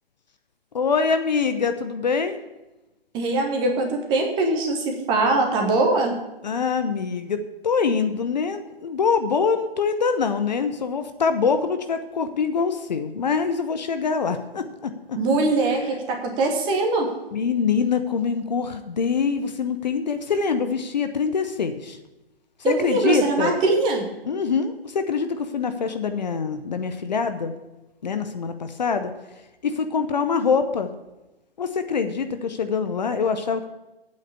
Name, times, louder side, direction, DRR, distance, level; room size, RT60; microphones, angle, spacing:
voice 1, 0.7-2.4 6.4-7.4 7.6-15.2 17.3-22.0 22.6-23.5 24.2-27.5 28.0-29.1 29.6-30.9 31.6-33.7, left 5 dB, 45° left, 9 dB, 0.8 m, -24 dB
voice 2, 3.1-6.1 15.2-17.1 22.6-24.0, right 2 dB, 15° right, 3 dB, 1.2 m, -22 dB
8.4 x 6.7 x 8.5 m, 1.0 s
figure-of-eight pair, 130°, 31 cm